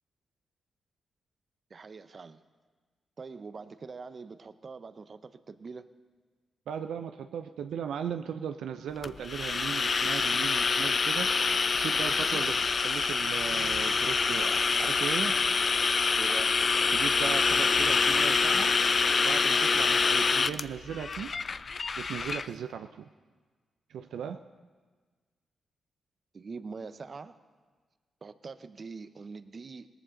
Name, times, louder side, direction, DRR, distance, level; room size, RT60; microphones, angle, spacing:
voice 1, 1.7-2.4 3.2-5.9 12.3-12.5 16.1-16.6 26.3-27.4 28.2-29.9, right 4 dB, 50° right, 12 dB, 0.7 m, -43 dB
voice 2, 6.7-11.3 11.8-15.4 16.9-18.7 19.2-21.3 22.0-23.1 23.9-24.4, right 8 dB, 85° right, 8 dB, 0.4 m, -37 dB
sound 1, 9.0-22.5, left 4 dB, 50° left, 0.4 m, -26 dB
18.5 x 14.0 x 3.8 m, 1.4 s
cardioid pair, 60°, 0 cm